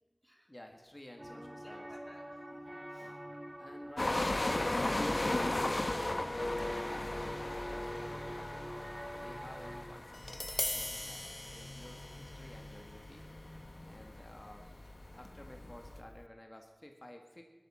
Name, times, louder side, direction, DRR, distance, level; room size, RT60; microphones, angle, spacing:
voice 1, 0.5-1.9 3.0-3.2 3.6-8.4 9.0-13.2 13.8-17.4, left 1 dB, 35° left, 3 dB, 1.8 m, -52 dB
voice 2, 1.2-3.2, equal, 5° right, 2 dB, 2.5 m, -58 dB
sound 1, 1.2-9.8, equal, 30° right, 2.0 m, -45 dB
sound 2, 4.0-16.0, left 2 dB, 70° left, 1.2 m, -37 dB
Tap, 10.1-16.3, left 1 dB, 50° left, 0.7 m, -43 dB
18.0 x 13.0 x 5.8 m, 1.2 s
wide cardioid pair, 50°, 0 cm